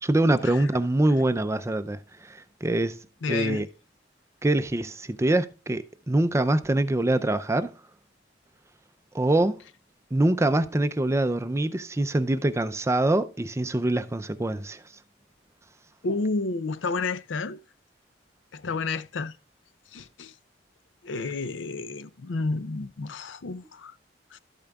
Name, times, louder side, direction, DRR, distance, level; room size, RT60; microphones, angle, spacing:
voice 1, 0.0-3.0 3.3-3.7 4.4-7.7 9.1-9.6 10.1-14.8, right 1 dB, 15° right, 0.4 m, -24 dB
voice 2, 3.2-3.6 16.0-17.6 18.5-19.4 19.9-20.3 21.0-24.0 24.3-24.4, left 3 dB, 70° left, 0.5 m, -31 dB
12.0 x 8.6 x 2.3 m
head